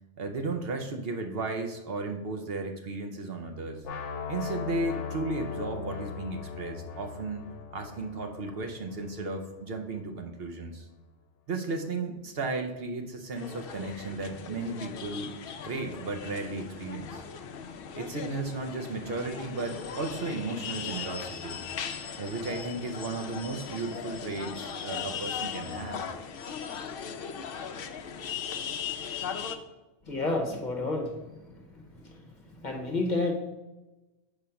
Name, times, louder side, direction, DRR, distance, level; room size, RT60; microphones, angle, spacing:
voice 1, 0.2-3.8 4.3-10.9 11.5-15.3 15.6-17.3 17.9-21.6 22.2-26.0, right 3 dB, 60° right, 4 dB, 0.8 m, -34 dB
sound 1, 3.8-9.8, left 6 dB, 80° left, 1.0 m, -39 dB
sound 2, 13.3-29.6, left 7 dB, 60° left, 0.7 m, -38 dB
voice 2, 30.0-33.3, left 2 dB, 40° left, 2 dB, 1.0 m, -31 dB
5.1 x 4.9 x 5.6 m, 1.1 s
omnidirectional pair, 1.2 m